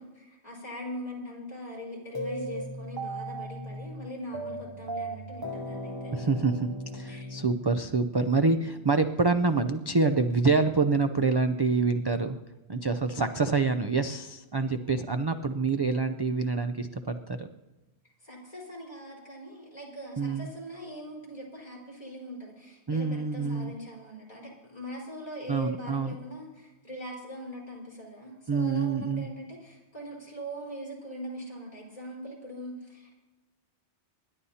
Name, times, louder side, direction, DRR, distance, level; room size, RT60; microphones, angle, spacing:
voice 1, 0.0-6.2 7.1-7.3 14.8-15.0 18.2-33.2, equal, 35° left, -4 dB, 4.6 m, -41 dB
sound 1, 2.1-8.3, right 1 dB, 25° right, 0.7 m, -37 dB
voice 2, 6.1-12.4 12.7-17.5 20.2-20.5 22.9-23.7 25.5-26.2 28.5-29.3, right 4 dB, 40° right, 8 dB, 0.3 m, -26 dB
26.5 x 11.5 x 2.8 m, 1.1 s
omnidirectional pair, 1.2 m